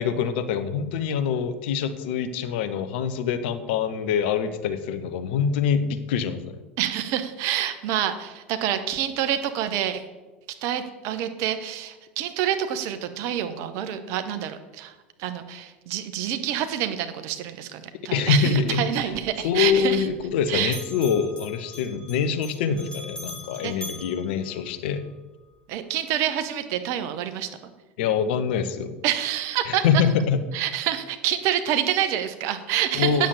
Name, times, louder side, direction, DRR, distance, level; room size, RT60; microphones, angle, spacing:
voice 1, 0.0-6.6 18.0-18.9 19.4-25.0 28.0-29.0 29.7-30.4 32.9-33.3, left 6 dB, 60° left, 10 dB, 0.9 m, -25 dB
voice 2, 6.8-10.0 10.6-14.9 15.2-20.1 20.5-20.8 22.6-22.8 23.6-23.7 25.7-27.5 29.0-30.0 30.5-33.3, right 10 dB, 50° right, 9 dB, 1.0 m, -27 dB
Bell, 19.0-20.4 20.6-25.1, left 1 dB, 15° left, 3.6 m, -42 dB
9.1 x 7.4 x 6.9 m, 1.2 s
figure-of-eight pair, 75°, 6 cm